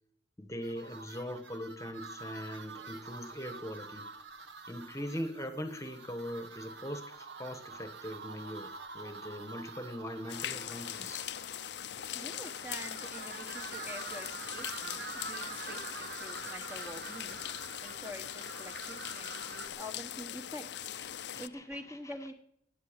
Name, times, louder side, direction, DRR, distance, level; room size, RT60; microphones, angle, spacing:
voice 1, 0.4-4.1 4.7-11.3 21.0-22.1, equal, 15° left, 9 dB, 1.2 m, -41 dB
sound 1, 0.6-19.7, right 4 dB, 75° right, 1.3 m, -47 dB
sound 2, 10.3-21.5, left 10 dB, 70° left, 0.5 m, -41 dB
voice 2, 12.1-17.4 17.8-20.9 21.4-22.3, equal, 10° right, 5 dB, 1.2 m, -46 dB
13.0 x 9.3 x 8.8 m, 0.72 s
head